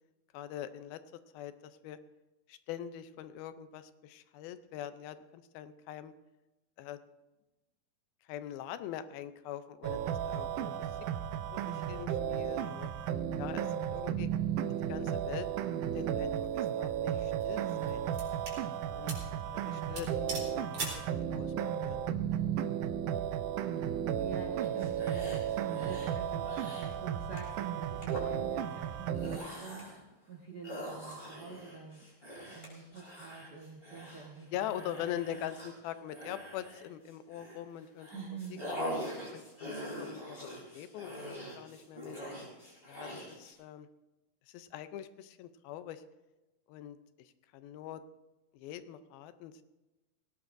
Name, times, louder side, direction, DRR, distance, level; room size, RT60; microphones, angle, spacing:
voice 1, 0.3-1.0 1.3-2.0 2.5-6.1 6.8-7.0 8.3-11.0 11.5-12.9 13.4-14.3 14.9-15.5 15.9-18.1 18.9-19.2 19.4-22.5 34.5-38.1 38.5-38.8 39.3-42.2 42.9-43.9 44.5-46.0 46.7-48.0 48.5-49.6, left 11 dB, 80° left, 11 dB, 2.5 m, -43 dB
sound 1, 9.8-29.4, right 9 dB, 85° right, 1.8 m, -34 dB
sound 2, 16.4-16.7 17.4-18.6 19.1-19.3 19.6-19.7 20.0-21.1, right 3 dB, 40° right, 4.6 m, -40 dB
voice 2, 23.8-29.9 30.3-32.0 32.4-35.4 38.1-38.6, right 5 dB, 70° right, -1 dB, 0.9 m, -46 dB
sound 3, 24.6-26.1 26.4-26.9 27.4-27.6 28.0-28.2 28.9-30.0 30.6-37.6 38.0-43.5, equal, 15° left, 4.4 m, -43 dB
19.5 x 17.5 x 2.6 m, 1.0 s
omnidirectional pair, 4.3 m